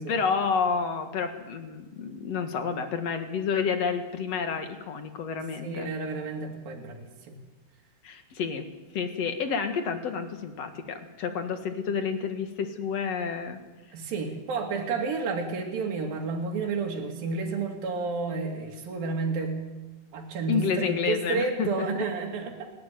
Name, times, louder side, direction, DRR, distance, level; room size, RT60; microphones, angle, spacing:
voice 1, 0.1-5.9 8.0-8.7 8.9-13.6 20.5-21.9, left 6 dB, 55° left, 7 dB, 2.5 m, -29 dB
voice 2, 5.6-7.4 13.9-19.6 20.1-22.7, right 4 dB, 80° right, 1 dB, 4.3 m, -31 dB
30.0 x 12.0 x 9.3 m, 1.1 s
omnidirectional pair, 4.1 m